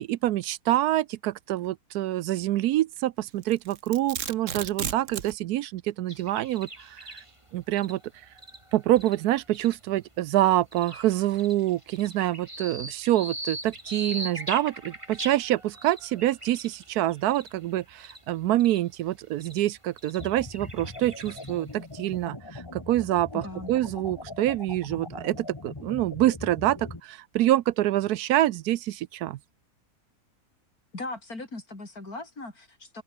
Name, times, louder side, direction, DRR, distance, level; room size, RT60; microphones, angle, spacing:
voice 1, 0.0-7.2 7.5-8.0 8.7-29.4, right 14 dB, 80° right, 1.1 m, -26 dB
Domestic sounds home sounds, 3.4-5.3, right 8 dB, 55° right, 1.4 m, -34 dB
sound 1, 6.1-9.9 10.4-18.3 18.6-18.8 19.4-19.6 20.0-21.7, right 1 dB, 20° right, 5.4 m, -41 dB
sound 2, 20.2-27.0, left 2 dB, 15° left, 1.4 m, -41 dB
voice 2, 23.3-23.7 30.9-33.0, left 2 dB, 65° left, 6.2 m, -38 dB
open air
omnidirectional pair, 1.7 m